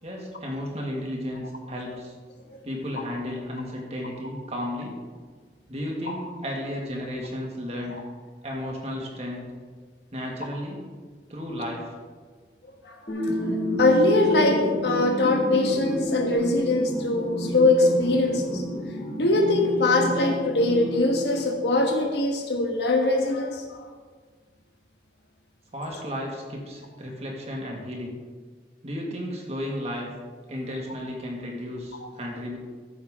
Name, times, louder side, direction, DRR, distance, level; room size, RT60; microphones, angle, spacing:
voice 1, 0.0-2.1 2.6-5.0 5.7-8.0 8.4-9.5 10.1-10.9 11.3-11.9 25.7-28.2 28.8-30.1 30.5-32.6, equal, 35° right, -1 dB, 2.0 m, -33 dB
voice 2, 12.8-13.5 13.8-18.6 19.2-23.9, left 2 dB, 75° left, 3 dB, 1.4 m, -22 dB
sound 1, 13.1-22.1, equal, 35° left, 1.9 m, -30 dB
13.5 x 7.5 x 3.7 m, 1.5 s
head